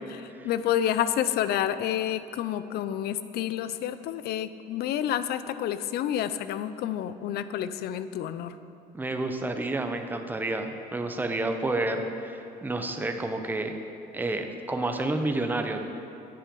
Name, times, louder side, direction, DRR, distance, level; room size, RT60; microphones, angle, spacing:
voice 1, 0.0-8.6, left 10 dB, 70° left, 13 dB, 0.5 m, -29 dB
voice 2, 8.9-13.7 14.1-15.8, right 2 dB, 10° right, 5 dB, 0.7 m, -30 dB
9.9 x 7.7 x 5.3 m, 2.8 s
cardioid pair, 110°, 17 cm